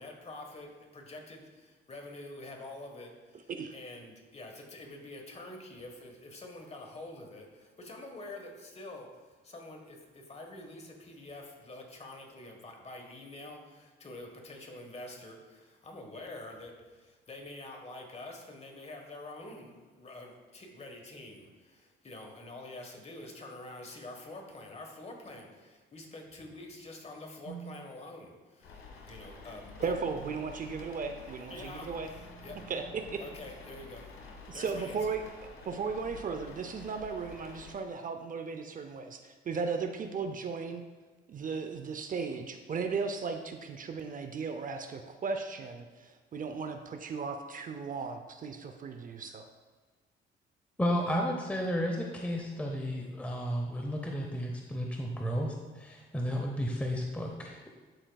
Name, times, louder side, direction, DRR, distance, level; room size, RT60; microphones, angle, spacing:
voice 1, 0.0-30.0 31.5-32.7 33.2-34.2 34.5-35.2, left 2 dB, 30° left, 2 dB, 1.3 m, -47 dB
sound 1, 27.4-28.0 30.9-34.4, right 8 dB, 70° right, 1.0 m, -52 dB
sound 2, 28.6-37.7, left 4 dB, 85° left, 1.3 m, -49 dB
voice 2, 29.8-32.1 32.7-33.2 34.5-35.2 35.6-40.8 41.3-49.4, right 5 dB, 45° right, 6 dB, 0.5 m, -36 dB
voice 3, 50.8-57.7, equal, 5° left, 1 dB, 0.7 m, -33 dB
12.0 x 4.4 x 2.3 m, 1.3 s
cardioid pair, 90°, 20 cm